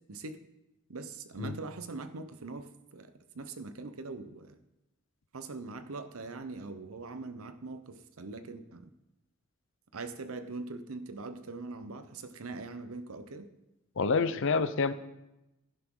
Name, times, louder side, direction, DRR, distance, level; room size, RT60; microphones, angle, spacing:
voice 1, 0.9-4.6 5.3-8.9 9.9-13.5, right 3 dB, 90° right, 11 dB, 0.9 m, -42 dB
voice 2, 14.0-14.9, left 4 dB, 65° left, 13 dB, 0.7 m, -27 dB
11.0 x 11.0 x 3.9 m, 0.90 s
head